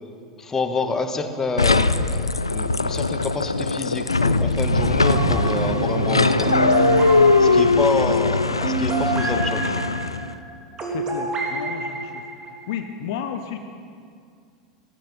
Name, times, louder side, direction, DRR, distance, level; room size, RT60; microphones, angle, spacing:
voice 1, 0.4-2.2 2.5-6.8 7.4-9.8, left 4 dB, 20° left, 6 dB, 1.5 m, -28 dB
sound 1, 1.6-10.3, left 3 dB, 85° left, 0.4 m, -20 dB
sound 2, 4.0-7.1, right 4 dB, 65° right, 1.5 m, -27 dB
sound 3, 5.0-12.8, right 3 dB, 30° right, 2.9 m, -29 dB
voice 2, 5.9-6.4 10.8-12.2 12.7-13.6, left 8 dB, 55° left, 7 dB, 0.9 m, -33 dB
15.0 x 15.0 x 5.4 m, 2.3 s
figure-of-eight pair, 85°, 3 cm